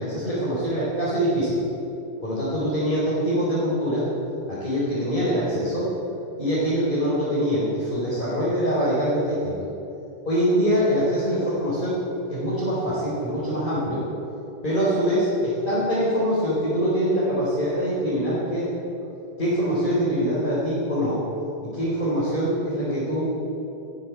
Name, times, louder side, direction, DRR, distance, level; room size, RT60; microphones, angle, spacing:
voice 1, 0.0-1.6 2.2-4.1 4.5-5.9 6.4-9.5 10.2-12.0 12.3-14.1 14.6-18.7 19.4-21.3 21.6-23.3, equal, 15° left, -9 dB, 4.1 m, -24 dB
14.0 x 12.5 x 7.8 m, 3.0 s
omnidirectional pair, 4.3 m